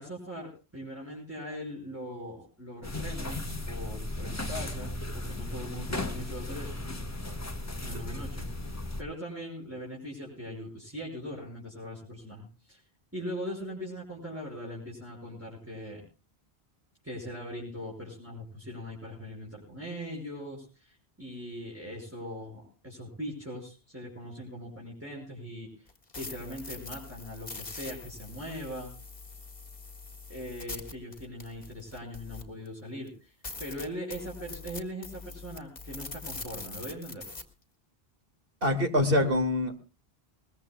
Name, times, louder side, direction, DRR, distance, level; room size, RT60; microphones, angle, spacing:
voice 1, 0.0-6.8 7.8-8.5 9.0-12.8 13.1-16.0 17.0-25.9 26.2-28.9 30.3-33.3 33.6-37.2, equal, 15° right, -5 dB, 5.7 m, -40 dB
sound 1, 2.8-9.0, left 1 dB, 15° left, 1.1 m, -36 dB
sound 2, 25.9-32.7 33.1-33.2 33.4-37.4, left 3 dB, 45° left, 1.8 m, -43 dB
voice 2, 38.6-39.8, left 1 dB, 60° right, 6 dB, 2.2 m, -25 dB
21.5 x 21.0 x 2.3 m, 0.32 s
omnidirectional pair, 1.0 m